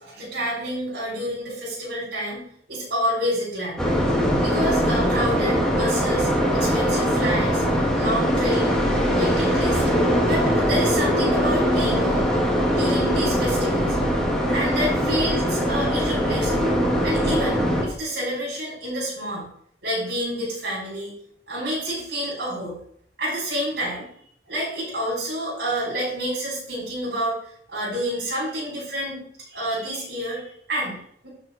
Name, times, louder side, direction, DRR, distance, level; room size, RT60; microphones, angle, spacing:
voice 1, 0.0-2.4 2.7-3.8 4.4-7.6 7.9-8.8 9.1-10.0 10.2-12.3 12.7-14.0 14.5-16.7 17.0-19.5 19.8-21.1 21.5-22.8 23.2-24.0 24.5-27.4 27.7-29.2 29.5-31.3, equal, 65° right, -6 dB, 5.1 m, -28 dB
sound 1, 3.8-17.8, equal, 5° left, 2.3 m, -21 dB
11.0 x 6.7 x 4.5 m, 0.63 s
head